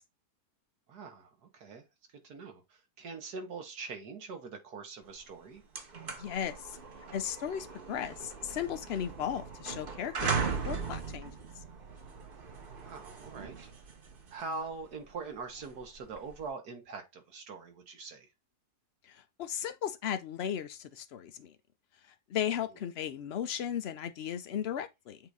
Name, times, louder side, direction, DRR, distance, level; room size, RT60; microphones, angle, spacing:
voice 1, 0.9-1.8 2.1-5.6 12.8-13.7 14.3-18.3, right 4 dB, 75° right, 1.8 m, -43 dB
sound 1, 5.2-5.3 5.6-16.5, right 5 dB, 40° right, 1.0 m, -39 dB
voice 2, 6.2-6.8 7.1-11.3 19.0-21.5 22.3-25.2, left 9 dB, 75° left, 0.5 m, -36 dB
7.8 x 2.7 x 4.7 m
omnidirectional pair, 1.7 m